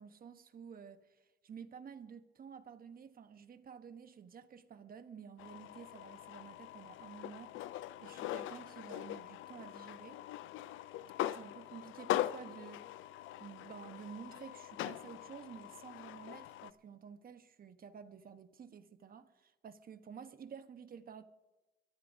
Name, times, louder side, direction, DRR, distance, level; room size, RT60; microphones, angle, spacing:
voice 1, 0.0-10.2 11.2-21.2, right 7 dB, 45° right, 1.2 m, -52 dB
sound 1, 5.4-16.7, left 13 dB, 80° left, 0.5 m, -42 dB
22.5 x 13.5 x 2.8 m
cardioid pair, 90°, 20 cm